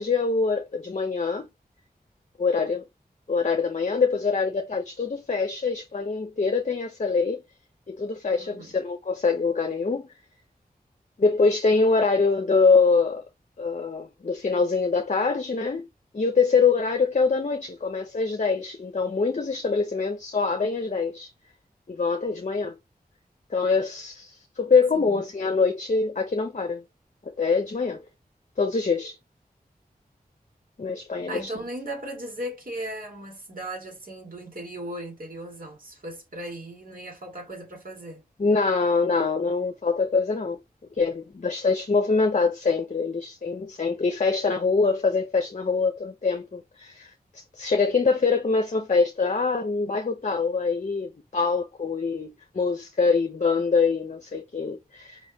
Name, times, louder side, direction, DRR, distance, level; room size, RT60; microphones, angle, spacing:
voice 1, 0.0-1.5 2.4-2.8 3.3-7.4 7.9-10.1 11.2-13.2 13.6-15.9 16.1-21.3 21.9-22.8 23.5-26.8 27.2-28.0 28.6-29.2 30.8-31.5 38.4-40.6 41.0-55.2, left 4 dB, 50° left, 0.8 m, -24 dB
voice 2, 8.4-8.8 24.9-25.2 31.3-38.2, right 1 dB, 60° right, 2.4 m, -37 dB
5.2 x 3.1 x 2.7 m
wide cardioid pair, 50°, 16 cm